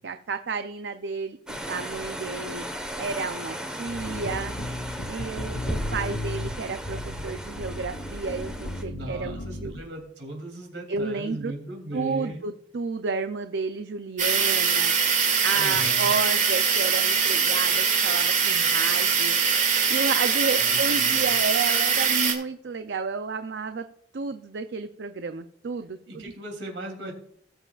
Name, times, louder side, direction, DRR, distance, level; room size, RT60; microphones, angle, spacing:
voice 1, 0.0-2.7 3.0-4.5 5.1-9.7 10.9-11.5 11.9-14.9 15.4-23.8 24.1-26.3, right 4 dB, 65° right, 8 dB, 0.5 m, -31 dB
sound 1, 1.5-8.8, equal, 5° right, 1.2 m, -35 dB
sound 2, 3.9-9.9, left 1 dB, 75° left, 1.1 m, -36 dB
voice 2, 8.9-12.4 15.6-16.1 20.6-21.3 26.1-27.1, right 1 dB, 90° right, 1 dB, 2.9 m, -38 dB
sound 3, 14.2-22.3, right 6 dB, 45° right, 1.9 m, -22 dB
18.5 x 7.6 x 2.4 m, 0.66 s
head